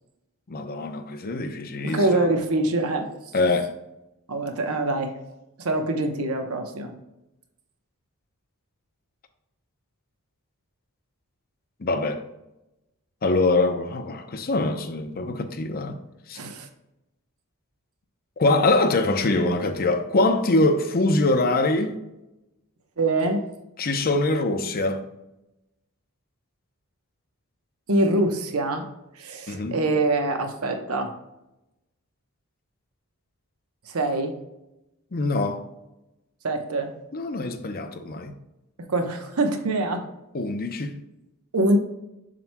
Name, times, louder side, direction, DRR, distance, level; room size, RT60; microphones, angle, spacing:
voice 1, 0.5-2.3 3.3-3.7 11.8-12.2 13.2-15.9 16.3-16.4 18.4-22.0 23.8-25.0 29.5-29.8 35.1-35.6 37.1-38.3 40.3-41.0, left 2 dB, 45° left, 0.7 m, -23 dB
voice 2, 1.8-3.1 4.3-5.1 5.6-6.9 16.3-16.7 23.0-23.4 27.9-28.8 29.1-31.1 33.9-34.3 36.4-36.9 38.9-40.0 41.5-41.8, right 2 dB, 75° right, 0.9 m, -24 dB
7.5 x 5.9 x 2.2 m
head